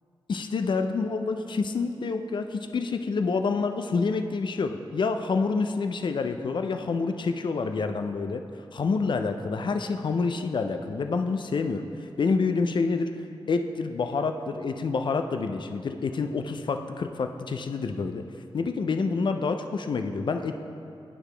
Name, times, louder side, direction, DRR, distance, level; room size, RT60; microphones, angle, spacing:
voice 1, 0.3-2.5 2.7-8.4 8.7-13.1 13.5-18.2 18.5-20.6, left 4 dB, 60° left, 7 dB, 0.4 m, -27 dB
10.5 x 4.9 x 3.3 m, 2.6 s
wide cardioid pair, 100°, 9 cm